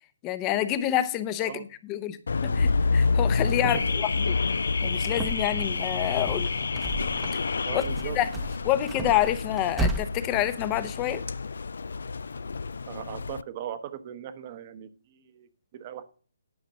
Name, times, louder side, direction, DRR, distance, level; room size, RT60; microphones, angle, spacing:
voice 1, 0.2-2.2 2.4-3.8 4.3-4.4 4.8-6.5 7.7-7.8 8.2-8.3 8.6-11.2, left 12 dB, 25° left, 0.8 m, -27 dB
Car / Alarm, 2.3-13.4, left 4 dB, 75° left, 0.3 m, -28 dB
voice 2, 3.6-4.0 7.6-8.2 12.9-16.0, right 10 dB, 40° right, 1.0 m, -39 dB
sound 1, 4.8-5.7 6.0-7.5 7.8-10.0, right 3 dB, 10° right, 0.9 m, -34 dB
10.5 x 5.1 x 6.6 m
hypercardioid pair, 145°, 0 cm